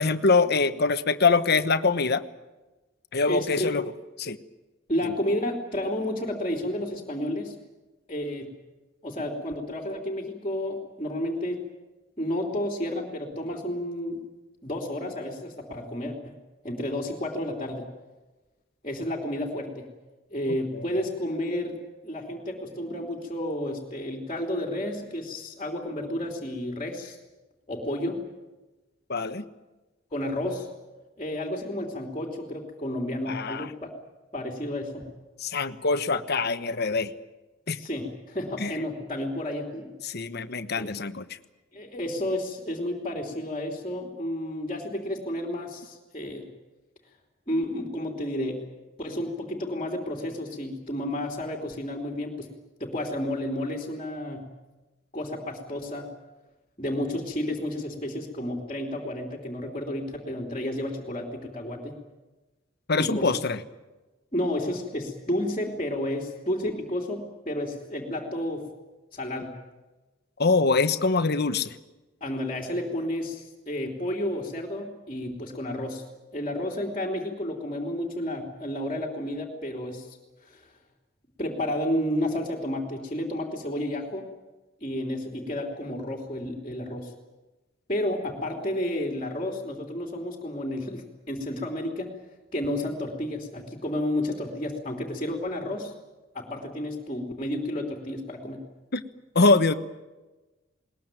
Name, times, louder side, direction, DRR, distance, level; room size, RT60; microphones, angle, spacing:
voice 1, 0.0-2.2 3.1-3.8 4.2-4.4 5.0-5.1 20.7-20.8 29.1-29.5 33.3-33.7 35.4-37.1 37.7-37.8 38.6-38.7 40.0-41.2 62.9-63.6 70.4-71.8 98.9-99.0 99.3-99.7, left 3 dB, 55° left, 10 dB, 1.2 m, -24 dB
voice 2, 3.3-3.8 4.9-7.5 8.1-8.5 9.0-11.6 12.2-14.2 14.6-16.4 16.6-17.9 18.8-19.9 20.3-21.8 22.0-27.2 27.7-28.3 30.1-30.7 31.2-33.9 34.3-35.1 37.8-39.9 40.8-40.9 41.7-46.5 47.5-48.7 49.0-52.5 52.8-54.5 55.1-56.1 56.8-62.0 63.0-63.4 64.3-68.7 69.1-69.6 72.2-76.0 76.3-80.2 80.4-80.7 81.4-84.3 84.8-87.1 87.9-92.2 92.5-95.9 96.3-98.6, left 1 dB, 30° left, 1 dB, 3.2 m, -31 dB
21.0 x 20.5 x 9.1 m, 1.1 s
head